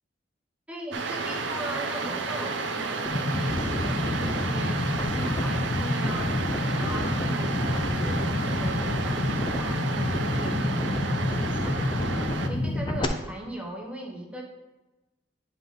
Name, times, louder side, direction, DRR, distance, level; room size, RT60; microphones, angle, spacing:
voice 1, 0.7-6.4 6.8-14.4, right 1 dB, 5° right, -1 dB, 0.8 m, -39 dB
sound 1, 0.9-12.5, right 4 dB, 75° right, 0.6 m, -32 dB
sound 2, 3.1-13.1, left 2 dB, 25° left, 0.5 m, -28 dB
10.0 x 3.7 x 3.7 m, 1.1 s
head